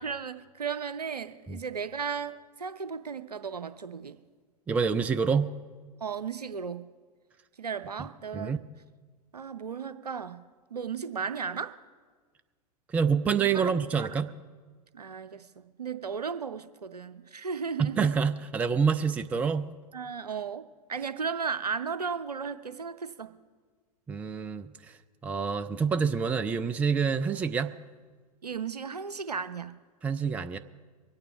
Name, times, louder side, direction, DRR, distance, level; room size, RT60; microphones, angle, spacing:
voice 1, 0.0-4.2 6.0-6.8 7.6-8.6 9.3-10.4 10.7-11.8 13.4-14.2 14.9-18.0 19.9-23.3 28.4-29.8, right 6 dB, 80° right, 12 dB, 0.7 m, -35 dB
voice 2, 4.7-5.5 8.3-8.6 12.9-14.3 17.8-19.7 24.1-24.7 25.2-27.7 30.0-30.6, right 6 dB, 5° right, 11 dB, 0.3 m, -27 dB
23.0 x 8.9 x 4.7 m, 1.5 s
figure-of-eight pair, 95°, 20 cm